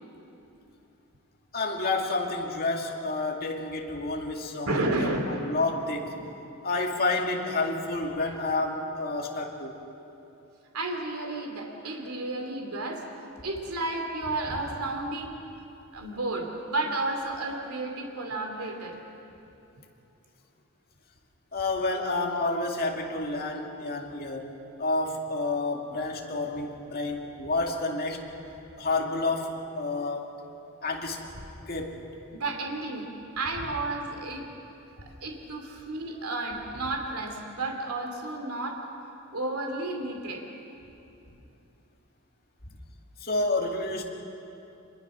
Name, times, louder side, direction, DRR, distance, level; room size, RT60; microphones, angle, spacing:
voice 1, 1.5-6.2 6.6-9.7 21.5-24.5 24.8-28.2 28.8-30.3 30.8-32.0 42.7-42.8 43.2-44.0, left 2 dB, 45° left, 0 dB, 2.3 m, -30 dB
voice 2, 4.6-5.5 10.7-13.0 13.4-15.4 15.9-19.0 32.3-33.0 33.4-34.4 35.0-38.8 39.3-40.4, right 2 dB, 75° right, 2 dB, 2.6 m, -32 dB
25.0 x 21.5 x 6.2 m, 2.9 s
head